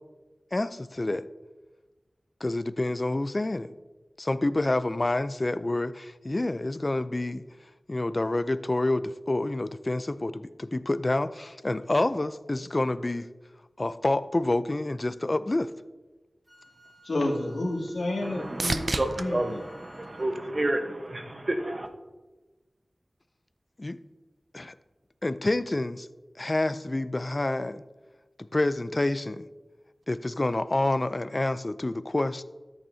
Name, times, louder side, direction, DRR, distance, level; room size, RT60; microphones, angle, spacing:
voice 1, 0.5-1.3 2.4-3.7 4.2-7.4 7.9-13.3 13.8-15.7 23.8-24.0 24.5-24.7 25.2-26.1 26.4-27.8 28.4-29.5 30.1-32.4, left 2 dB, 40° left, 0.4 m, -28 dB
Wind instrument woodwind instrument, 16.5-20.3, right 1 dB, 10° right, 2.3 m, -57 dB
sound 1, 16.9-21.1 21.6-22.2 30.0-30.1, right 3 dB, 70° right, 0.5 m, -36 dB
voice 2, 17.0-18.8 19.2-19.6, left 1 dB, 85° left, 2.2 m, -29 dB
voice 3, 18.2-21.9, right 1 dB, 45° right, 1.0 m, -30 dB
13.5 x 8.8 x 2.7 m
wide cardioid pair, 60°, 0 cm